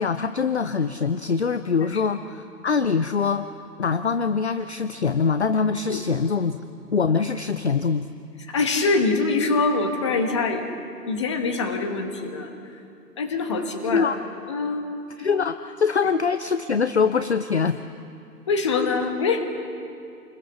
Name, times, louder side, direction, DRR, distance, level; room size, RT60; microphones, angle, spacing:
voice 1, 0.0-3.5 3.8-6.6 6.9-8.1 13.9-14.2 15.2-17.8, left 5 dB, 45° left, 12 dB, 0.6 m, -23 dB
voice 2, 8.5-10.6 11.1-12.5 13.2-14.1 14.5-14.8 16.0-16.1 18.5-19.5, left 3 dB, 20° left, 5 dB, 1.2 m, -24 dB
28.0 x 21.0 x 7.0 m, 2.6 s
hypercardioid pair, 165°, 49 cm